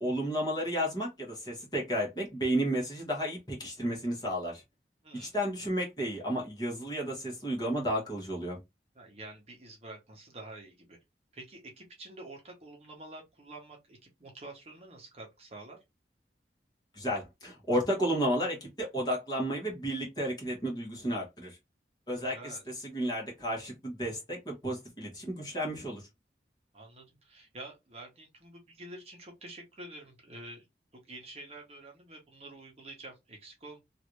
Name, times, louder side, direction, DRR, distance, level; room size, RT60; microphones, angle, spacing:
voice 1, 0.0-4.6 5.1-8.6 17.0-21.6 22.1-26.0, equal, 25° left, 1.3 m, -32 dB
voice 2, 8.9-11.0 11.3-15.8 22.2-22.6 26.7-30.7 30.9-33.8, right 2 dB, 35° right, 0.9 m, -48 dB
3.1 x 2.6 x 3.0 m
head